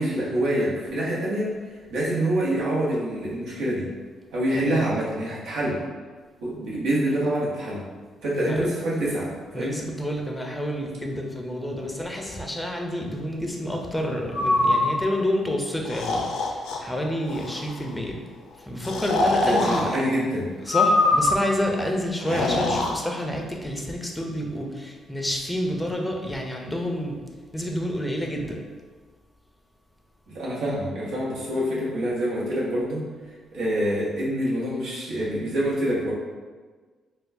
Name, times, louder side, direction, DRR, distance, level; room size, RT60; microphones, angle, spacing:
voice 1, 0.0-1.5 1.9-3.9 4.3-5.8 6.4-7.8 8.2-9.8 19.4-20.5 22.2-22.7 30.3-33.0 33.5-36.1, right 1 dB, 80° right, -6 dB, 1.0 m, -26 dB
voice 2, 9.5-18.2 18.7-19.9 20.7-27.2 27.5-28.6, left 1 dB, 10° left, 1 dB, 0.5 m, -29 dB
Breathing, 14.3-14.8 15.8-16.8 17.3-17.7 18.8-19.8 20.7-21.5 22.2-22.9, left 2 dB, 90° left, 0.4 m, -23 dB
4.1 x 2.3 x 2.6 m, 1.4 s
cardioid pair, 90°, 0 cm